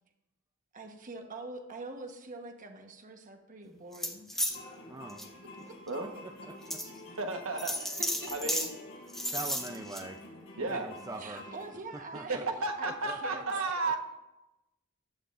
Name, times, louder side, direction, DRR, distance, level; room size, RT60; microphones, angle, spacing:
voice 1, 0.7-4.6 5.7-5.8 6.6-6.9 8.0-8.5 10.7-10.9 11.2-12.5 12.8-14.0, right 2 dB, 40° right, 4 dB, 1.1 m, -45 dB
sound 1, 3.9-4.6 5.1-5.2 5.9-6.0 6.7-6.9 7.6-8.7 9.1-10.0, equal, ahead, 0.9 m, -33 dB
sound 2, 4.5-11.8, left 2 dB, 65° left, 4.4 m, -49 dB
voice 2, 4.9-5.2 6.2-6.5 9.3-10.2 10.6-11.4 12.1-13.4, right 3 dB, 15° right, 3 dB, 0.5 m, -43 dB
voice 3, 7.2-7.8 8.3-8.7 10.6-10.9 12.3-14.0, right 3 dB, 75° right, 4 dB, 1.3 m, -33 dB
14.5 x 10.5 x 2.5 m, 0.97 s
head